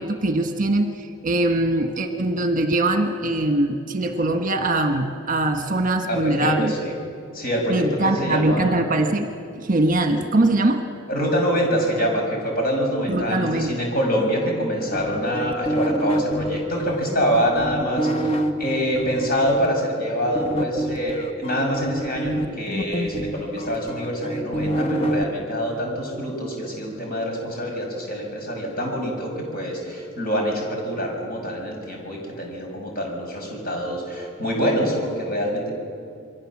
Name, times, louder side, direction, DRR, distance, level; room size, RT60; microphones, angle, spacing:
voice 1, 0.0-6.7 7.7-9.3 9.6-10.8 13.1-13.8, right 2 dB, 40° right, 5 dB, 1.4 m, -22 dB
voice 2, 6.1-6.9 7.3-8.8 11.1-35.7, equal, 45° left, 0 dB, 6.6 m, -25 dB
sound 1, 14.9-19.7 20.4-25.2, right 1 dB, 30° left, 1.2 m, -27 dB
28.5 x 23.0 x 7.5 m, 2.4 s
head